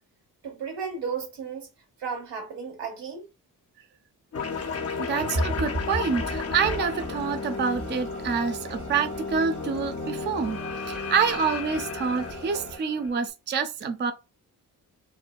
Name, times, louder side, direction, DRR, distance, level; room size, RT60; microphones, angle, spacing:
voice 1, 0.4-1.7 2.0-3.3, right 6 dB, 75° right, 1.0 m, -34 dB
sound 1, 4.3-13.3, left 5 dB, 35° left, 0.5 m, -34 dB
sound 2, 4.3-12.8, right 1 dB, 45° right, 0.8 m, -37 dB
voice 2, 5.1-10.6 10.9-14.1, right 6 dB, 25° right, 0.4 m, -27 dB
2.6 x 2.0 x 2.2 m
supercardioid pair, 45°, 42 cm